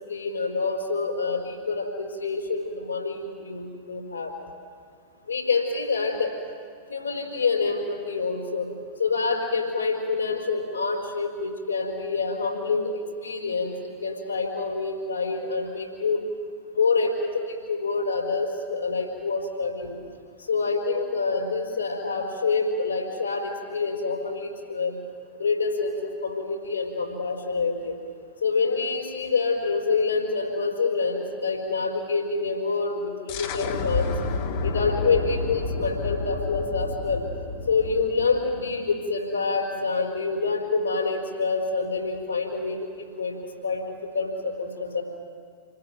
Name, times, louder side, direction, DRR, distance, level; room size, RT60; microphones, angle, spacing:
voice 1, 0.1-4.3 5.3-6.3 6.9-8.7 9.0-16.2 16.7-19.9 20.5-25.0 25.4-28.0 28.4-34.1 34.6-37.2 37.7-45.0, left 4 dB, 75° left, 2 dB, 4.7 m, -27 dB
sound 1, 33.3-38.8, left 3 dB, 50° left, 1.8 m, -30 dB
28.5 x 20.0 x 9.1 m, 2.1 s
figure-of-eight pair, 90°, 0 cm